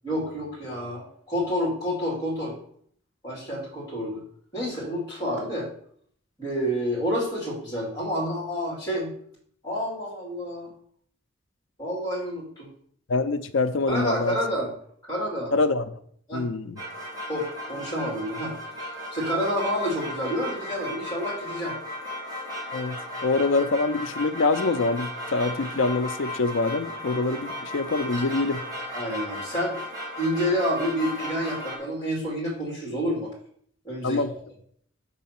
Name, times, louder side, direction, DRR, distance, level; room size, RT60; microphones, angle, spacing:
voice 1, 0.0-2.5 3.2-4.2 4.5-5.7 6.4-9.1 9.6-10.7 11.8-12.7 13.9-14.7 15.0-15.5 16.3-16.5 17.3-21.7 28.9-29.8 30.2-33.3 33.8-34.2, equal, 20° left, 2.6 m, -29 dB
voice 2, 13.1-14.4 15.5-15.9 16.3-16.8 22.7-28.7 34.0-34.3, left 3 dB, 75° left, 0.5 m, -25 dB
sound 1, 16.8-31.8, left 1 dB, 20° right, 1.5 m, -35 dB
6.2 x 4.0 x 5.8 m
head